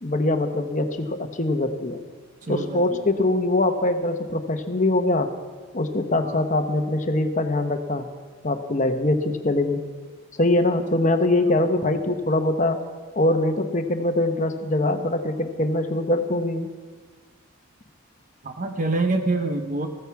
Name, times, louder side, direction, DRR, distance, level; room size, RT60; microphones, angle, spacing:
voice 1, 0.0-2.0 2.5-5.3 5.7-8.1 8.4-9.8 10.3-12.8 13.2-16.7, left 2 dB, 35° left, 7 dB, 1.0 m, -23 dB
voice 2, 2.4-3.1 6.1-6.4 11.0-11.1 11.6-11.7 18.4-19.9, right 2 dB, 35° right, 5 dB, 0.8 m, -26 dB
15.5 x 14.5 x 4.7 m, 1.5 s
head